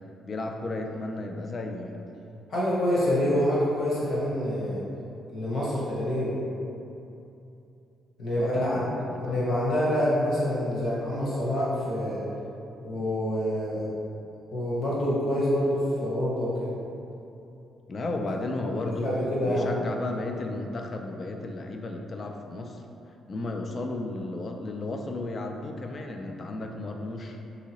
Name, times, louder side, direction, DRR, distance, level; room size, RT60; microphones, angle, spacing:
voice 1, 0.2-2.0 8.4-9.5 17.9-19.1 19.5-22.8 23.3-27.4, left 2 dB, 40° left, 3 dB, 0.3 m, -34 dB
voice 2, 2.5-4.8 5.3-6.4 8.2-8.9 9.2-12.2 12.8-13.8 14.5-16.7 19.0-19.7, equal, 65° left, -7 dB, 1.2 m, -26 dB
3.7 x 2.8 x 2.9 m, 2.8 s
cardioid pair, 90°, 0 cm